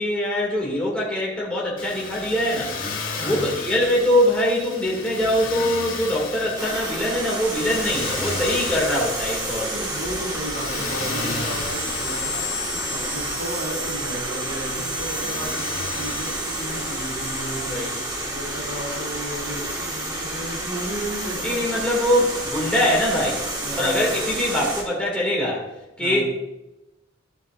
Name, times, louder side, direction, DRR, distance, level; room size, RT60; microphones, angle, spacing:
voice 1, 0.0-2.7 3.2-9.8 17.5-17.9 21.4-23.4 23.8-25.6 26.0-26.2, left 1 dB, 5° left, -5 dB, 2.1 m, -23 dB
Motor vehicle (road), 1.8-19.7, left 4 dB, 75° left, 2.4 m, -35 dB
voice 2, 3.2-3.5 9.7-21.7 23.6-24.1 26.0-26.2, right 1 dB, 75° right, -2 dB, 2.6 m, -34 dB
sound 1, 6.6-24.8, right 1 dB, 20° right, 1.5 m, -29 dB
13.0 x 7.1 x 2.4 m, 0.96 s
head